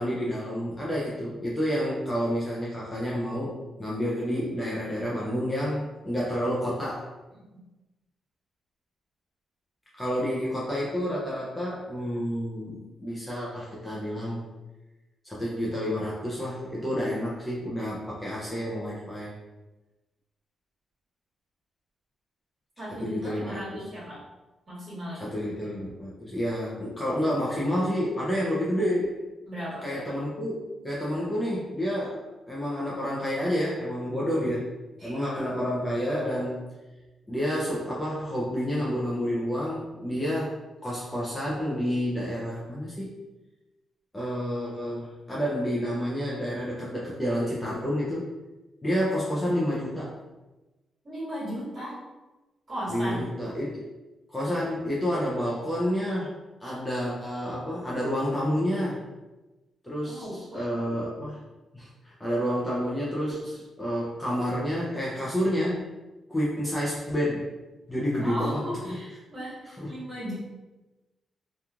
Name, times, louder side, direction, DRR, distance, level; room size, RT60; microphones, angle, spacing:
voice 1, 0.0-7.1 10.0-14.4 15.2-19.3 23.0-23.8 25.1-29.2 29.8-32.1 32.5-34.7 35.0-36.6 37.3-43.1 44.1-48.3 48.8-50.2 52.9-53.9 54.3-56.3 56.6-59.0 59.8-61.4 61.7-65.9 66.3-67.5 67.9-69.0 69.8-70.0, equal, 10° left, -6 dB, 0.4 m, -29 dB
voice 2, 22.8-24.2 24.7-25.2 29.5-30.1 35.0-35.2 51.0-52.0 52.7-53.2 60.0-60.9 68.2-70.3, equal, 35° right, -10 dB, 1.5 m, -36 dB
2.9 x 2.3 x 2.4 m, 1.1 s
wide cardioid pair, 165°, 0 cm